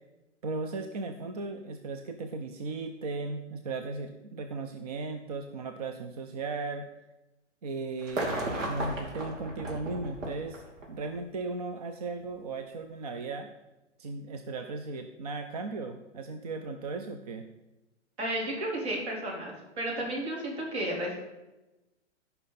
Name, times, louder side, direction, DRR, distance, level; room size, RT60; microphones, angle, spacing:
voice 1, 0.4-6.9 7.6-10.6 10.9-13.5 14.0-17.5, right 3 dB, 35° right, 7 dB, 0.4 m, -36 dB
sound 1, 8.0-11.1 12.2-12.3, right 1 dB, 80° right, 2.7 m, -35 dB
voice 2, 18.2-21.2, right 1 dB, 60° right, -2 dB, 4.0 m, -33 dB
15.5 x 5.5 x 4.1 m, 1.0 s
hypercardioid pair, 160°, 37 cm